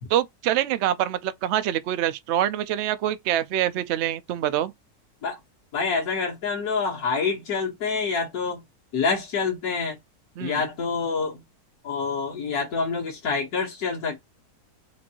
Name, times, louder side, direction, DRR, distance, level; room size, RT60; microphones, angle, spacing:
voice 1, 0.1-4.7 10.4-10.6, right 12 dB, 75° right, 0.6 m, -25 dB
voice 2, 5.7-8.6 8.9-10.0 10.4-11.4 11.8-14.2, left 5 dB, 65° left, 1.6 m, -27 dB
4.4 x 2.6 x 2.8 m
omnidirectional pair, 1.7 m